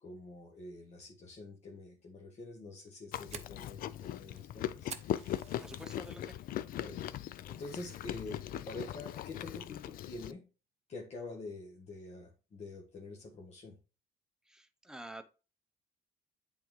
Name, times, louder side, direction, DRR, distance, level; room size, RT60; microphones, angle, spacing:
voice 1, 0.0-4.9 6.8-10.5 10.9-13.8, left 2 dB, 40° left, 1.1 m, -47 dB
Fire, 2.7-6.3 6.7-7.1 7.5-7.6 8.1-8.5, right 7 dB, 40° right, 0.7 m, -49 dB
Chewing mastication, 3.1-10.3, left 12 dB, 60° left, 0.4 m, -40 dB
voice 2, 5.6-6.5 14.5-15.2, right 1 dB, 5° right, 0.7 m, -49 dB
8.4 x 3.7 x 3.1 m
cardioid pair, 110°, 17 cm